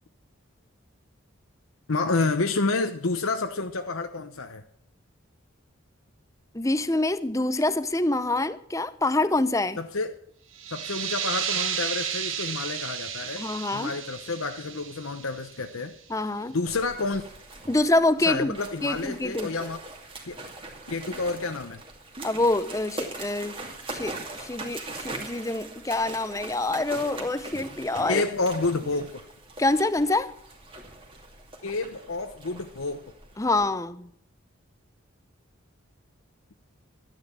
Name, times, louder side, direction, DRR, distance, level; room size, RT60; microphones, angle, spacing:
voice 1, 1.9-4.6 9.8-10.1 10.7-13.4 13.7-15.9 16.5-17.2 18.2-19.8 20.3-20.4 20.9-21.8 28.0-29.2 31.6-33.0, left 3 dB, 80° left, 0.9 m, -29 dB
voice 2, 6.5-9.8 13.4-14.0 16.1-16.5 17.7-19.5 22.2-28.2 29.6-30.3 33.4-34.1, left 2 dB, 15° left, 0.6 m, -26 dB
sound 1, 10.5-15.9, right 8 dB, 70° right, 2.0 m, -33 dB
sound 2, 16.7-33.7, right 2 dB, 25° right, 2.4 m, -41 dB
12.0 x 10.5 x 7.4 m
head